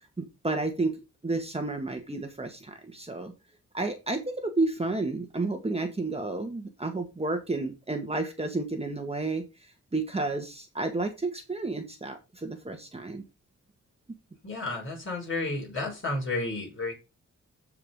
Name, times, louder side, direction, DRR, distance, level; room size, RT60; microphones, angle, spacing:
voice 1, 0.4-3.3 3.7-9.5 9.9-13.2, right 2 dB, 20° right, 4 dB, 1.7 m, -31 dB
voice 2, 14.4-16.9, left 2 dB, 45° left, -2 dB, 6.0 m, -32 dB
15.0 x 5.0 x 3.7 m, 0.28 s
wide cardioid pair, 100°, 29 cm